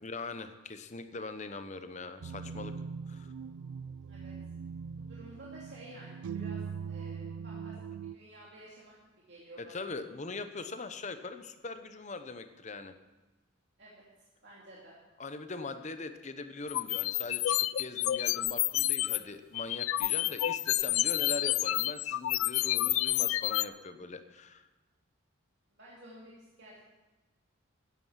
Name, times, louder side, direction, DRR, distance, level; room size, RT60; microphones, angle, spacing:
voice 1, 0.0-2.8 3.1-3.3 9.6-13.0 15.2-24.7, left 3 dB, 35° left, 9 dB, 0.9 m, -41 dB
sound 1, 2.2-8.2, right 6 dB, 90° right, 0.4 m, -41 dB
voice 2, 5.0-7.8 8.0-8.9 9.3-9.9 13.8-14.0 14.4-15.0 25.7-26.8, right 1 dB, 55° right, -6 dB, 2.7 m, -52 dB
sound 2, 16.7-19.2 19.5-23.7, left 16 dB, 80° left, 0.3 m, -29 dB
15.5 x 10.5 x 5.8 m, 1.1 s
head